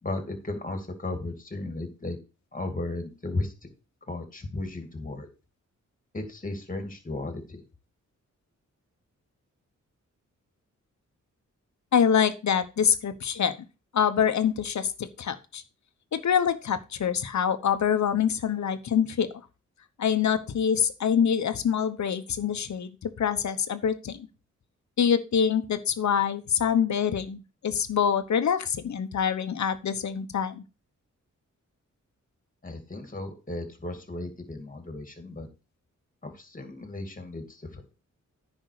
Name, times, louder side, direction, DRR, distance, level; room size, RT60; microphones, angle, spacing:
voice 1, 0.0-2.2 2.5-3.5 4.1-5.3 6.1-7.6 32.6-35.5 36.2-37.9, left 2 dB, 25° left, 5 dB, 2.4 m, -35 dB
voice 2, 11.9-13.5 13.9-15.6 16.1-19.3 20.0-24.3 25.0-30.6, left 8 dB, 70° left, 10 dB, 1.0 m, -25 dB
10.0 x 5.4 x 4.8 m, 0.32 s
wide cardioid pair, 95°, 30 cm